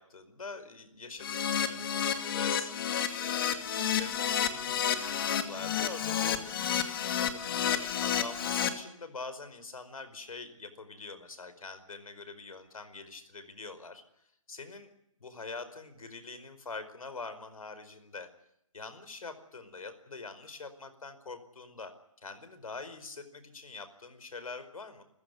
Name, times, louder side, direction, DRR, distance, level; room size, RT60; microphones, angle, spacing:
voice 1, 0.0-6.6 7.2-14.0 14.5-14.9 15.2-18.3 18.7-21.9 22.2-25.0, left 4 dB, 75° left, 11 dB, 4.9 m, -44 dB
Keyboard (musical), 1.2-8.7, left 9 dB, 40° left, 2.4 m, -30 dB
27.5 x 15.5 x 9.5 m, 0.76 s
hypercardioid pair, 155°, 18 cm